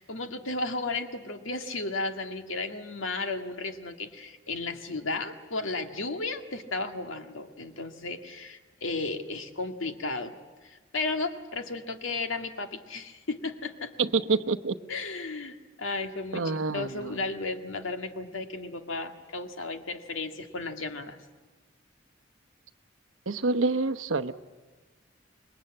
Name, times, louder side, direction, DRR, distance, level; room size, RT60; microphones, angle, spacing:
voice 1, 0.0-10.3 10.6-13.9 14.9-21.2, left 3 dB, 80° left, 6 dB, 1.9 m, -34 dB
voice 2, 14.0-14.7 16.3-17.2 23.3-24.4, right 3 dB, 80° right, 8 dB, 0.9 m, -27 dB
26.0 x 21.5 x 8.8 m, 1.3 s
head